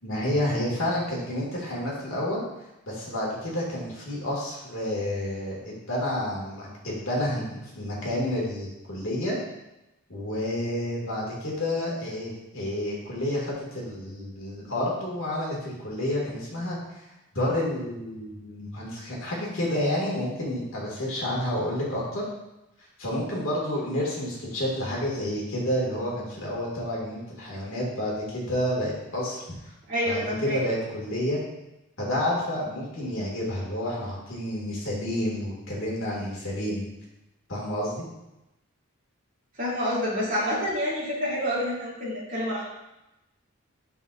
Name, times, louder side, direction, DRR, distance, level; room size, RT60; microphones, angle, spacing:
voice 1, 0.0-2.4 2.9-9.4 10.1-17.0 17.3-22.2 23.0-29.6 30.0-31.4 32.0-36.9 37.5-38.1, left 1 dB, 70° left, -4 dB, 2.2 m, -29 dB
voice 2, 29.9-30.6 39.6-42.6, equal, 40° right, -8 dB, 2.6 m, -28 dB
9.0 x 5.6 x 2.6 m, 0.94 s
head